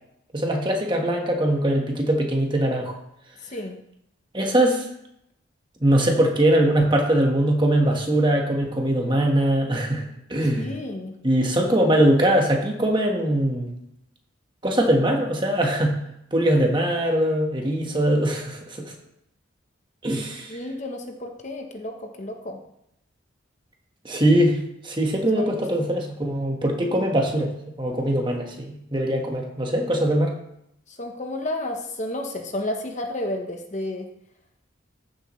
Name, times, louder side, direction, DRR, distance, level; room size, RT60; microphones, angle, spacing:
voice 1, 0.3-3.0 4.3-4.9 5.8-10.0 10.3-10.7 11.2-13.7 14.6-15.9 16.3-18.9 20.0-20.6 24.0-24.6 24.8-27.5 27.8-30.3, right 1 dB, 25° right, 1 dB, 1.4 m, -21 dB
voice 2, 3.4-3.8 10.6-11.2 20.5-22.6 25.4-25.5 30.9-34.1, left 1 dB, 35° left, 4 dB, 0.9 m, -31 dB
14.5 x 7.3 x 3.2 m, 0.78 s
head